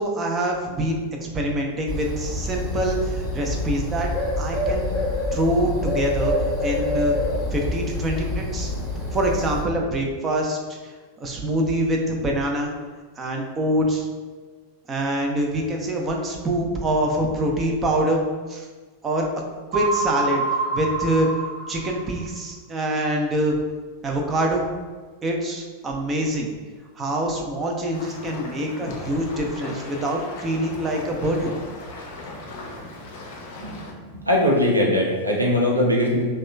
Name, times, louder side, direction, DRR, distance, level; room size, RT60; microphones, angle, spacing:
voice 1, 0.0-4.1 4.4-4.9 5.3-6.3 6.6-7.2 7.5-8.7 9.1-10.8 11.2-12.7 13.2-14.1 14.9-18.2 18.5-18.7 19.0-19.3 19.7-20.4 20.7-21.3 21.7-23.6 24.0-24.6 25.2-26.5 26.9-31.6, right 1 dB, 20° right, 1 dB, 0.5 m, -25 dB
Bird, 1.9-9.6, left 1 dB, 10° left, 0.9 m, -26 dB
sound 1, 19.7-22.3, right 3 dB, 40° right, 1.1 m, -26 dB
sound 2, 27.9-33.9, left 2 dB, 50° left, 0.5 m, -38 dB
voice 2, 33.6-36.2, left 1 dB, 85° right, -2 dB, 0.6 m, -21 dB
2.8 x 2.2 x 3.3 m, 1.4 s
figure-of-eight pair, 90°, 0 cm